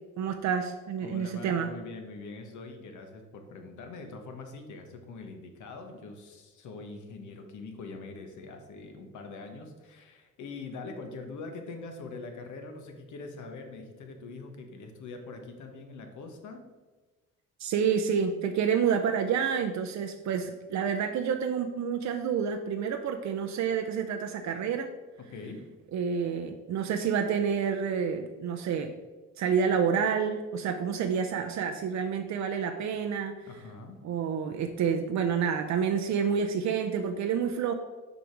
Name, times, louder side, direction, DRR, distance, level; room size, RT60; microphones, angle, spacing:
voice 1, 0.2-1.7 17.6-24.9 25.9-28.9 29.4-33.3 34.0-37.7, right 7 dB, 65° right, 5 dB, 0.6 m, -28 dB
voice 2, 1.0-16.6 25.3-25.6 33.5-34.0, left 3 dB, 75° left, 5 dB, 1.2 m, -43 dB
5.4 x 4.9 x 4.5 m, 1.3 s
cardioid pair, 90°, 30 cm